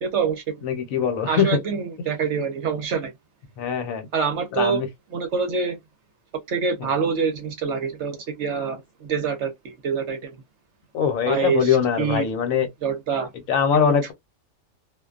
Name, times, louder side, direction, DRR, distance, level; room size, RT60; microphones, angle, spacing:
voice 1, 0.0-0.6 1.3-3.1 4.1-4.8 5.1-5.8 6.5-10.4 11.3-12.2 12.8-13.3 13.9-14.1, right 6 dB, 65° right, 0.9 m, -26 dB
voice 2, 0.6-1.6 3.6-4.1 4.5-4.9 6.8-6.9 10.9-12.7 13.5-14.1, left 7 dB, 75° left, 1.1 m, -22 dB
2.5 x 2.1 x 2.3 m
omnidirectional pair, 1.4 m